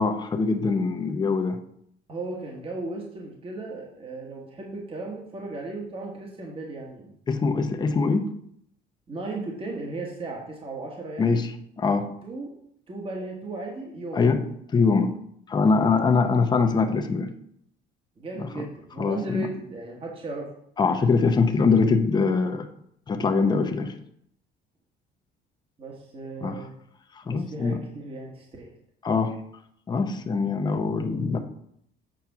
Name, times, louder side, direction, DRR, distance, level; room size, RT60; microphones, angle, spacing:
voice 1, 0.0-1.6 7.3-8.3 11.2-12.1 14.1-14.5 14.7-15.1 15.5-17.3 18.4-18.7 19.0-19.5 20.8-22.7 23.1-23.9 26.4-26.6 27.2-27.8 29.0-29.4 29.9-31.4, left 4 dB, 20° left, 6 dB, 0.7 m, -23 dB
voice 2, 2.1-7.2 9.1-11.4 12.2-12.5 12.9-14.3 15.9-16.1 18.2-20.5 25.8-26.7 27.2-28.7, right 2 dB, 30° right, -1 dB, 1.5 m, -36 dB
7.7 x 4.2 x 5.8 m, 0.70 s
cardioid pair, 150°, 19 cm